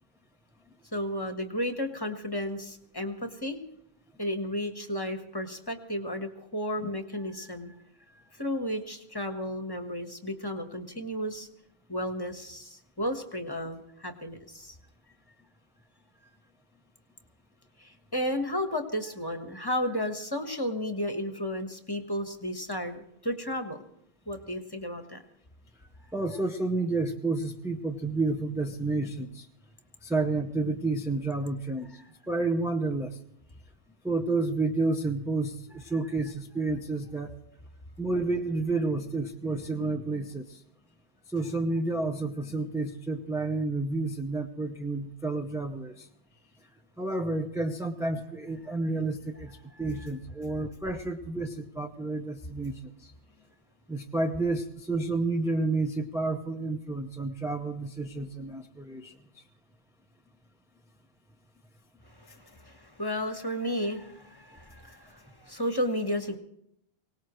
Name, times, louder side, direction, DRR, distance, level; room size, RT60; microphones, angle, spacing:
voice 1, 0.9-3.6 4.2-7.7 8.3-11.5 11.9-14.7 17.8-23.8 24.2-25.2 49.8-50.1 62.1-66.4, equal, 20° left, 6 dB, 1.3 m, -33 dB
voice 2, 26.1-29.5 30.0-31.9 32.3-33.2 34.0-37.4 38.0-40.6 41.3-46.1 47.0-53.1 53.9-59.4, right 3 dB, 5° right, 2 dB, 0.7 m, -30 dB
24.0 x 18.5 x 3.1 m, 0.76 s
omnidirectional pair, 1.1 m